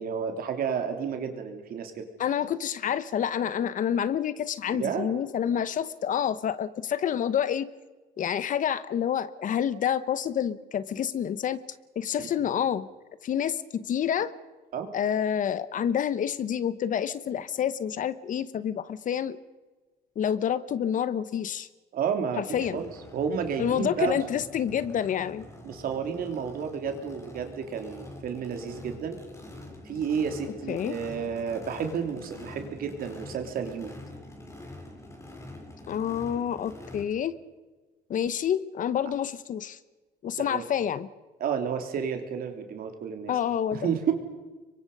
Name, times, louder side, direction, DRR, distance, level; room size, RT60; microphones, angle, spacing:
voice 1, 0.0-2.1 4.7-5.1 12.2-12.5 14.7-14.9 21.9-24.2 25.6-29.2 29.8-33.9 40.4-40.6 41.4-43.3 43.7-44.1, right 7 dB, 60° right, 5 dB, 3.2 m, -31 dB
voice 2, 2.2-7.7 8.2-11.6 12.0-12.9 13.2-14.3 14.9-19.4 20.2-21.7 22.3-22.8 23.6-25.5 30.5-31.0 35.9-37.3 38.1-39.8 40.2-41.1 43.3-44.0, left 9 dB, 50° left, 16 dB, 1.0 m, -28 dB
Race car auto racing / Idling / Accelerating revving vroom, 22.5-37.0, left 1 dB, 15° left, 4.6 m, -45 dB
26.0 x 23.5 x 5.5 m, 1.3 s
cardioid pair, 110°, 17 cm